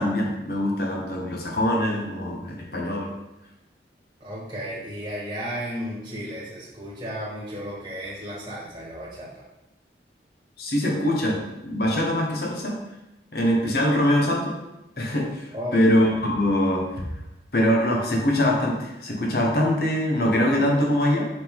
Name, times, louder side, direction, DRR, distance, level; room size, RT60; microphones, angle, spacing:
voice 1, 0.0-3.1 10.6-12.8 13.3-14.6 15.0-17.0 17.5-21.3, left 1 dB, 55° left, -1 dB, 1.3 m, -23 dB
voice 2, 4.2-9.4 15.5-15.9, equal, 20° right, -6 dB, 1.5 m, -34 dB
5.6 x 5.6 x 3.6 m, 0.93 s
head